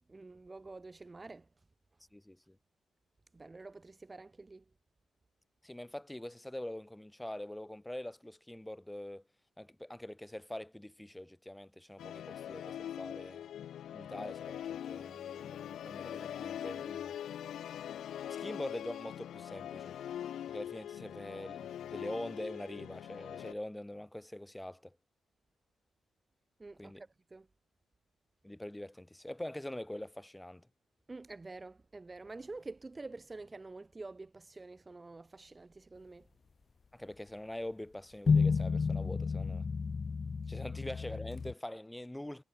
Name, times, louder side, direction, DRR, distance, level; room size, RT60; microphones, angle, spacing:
voice 1, 0.1-1.4 3.3-4.6 26.6-26.9 27.3-27.5 31.1-36.2, right 3 dB, 25° right, 3.1 m, -48 dB
voice 2, 2.1-2.6 5.6-9.2 9.6-13.5 13.9-17.1 18.3-19.9 20.5-25.0 26.8-27.0 28.4-30.7 36.9-39.7 40.5-42.4, left 1 dB, 10° left, 7.2 m, -44 dB
Musical instrument, 12.0-23.5, left 10 dB, 80° left, 0.9 m, -43 dB
sound 1, 38.3-41.5, left 5 dB, 40° left, 0.3 m, -31 dB
cardioid pair, 105°, 0 cm